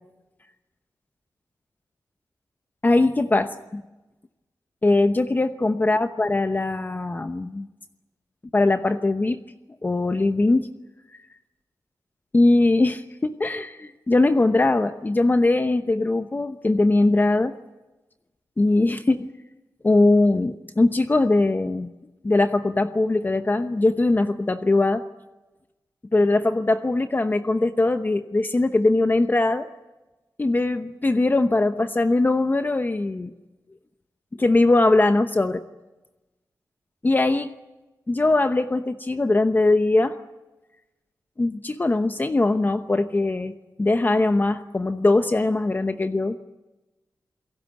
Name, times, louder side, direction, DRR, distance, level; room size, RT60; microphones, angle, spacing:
voice 1, 2.8-3.8 4.8-7.7 8.5-9.4 9.8-10.7 12.3-17.5 18.6-19.3 19.8-21.9 22.2-25.0 26.1-29.6 30.4-33.3 34.3-35.6 37.0-37.5 38.1-40.2 41.4-43.5 43.8-46.4, left 2 dB, 25° left, 8 dB, 0.9 m, -21 dB
28.5 x 17.5 x 9.1 m, 1.1 s
wide cardioid pair, 100°, 7 cm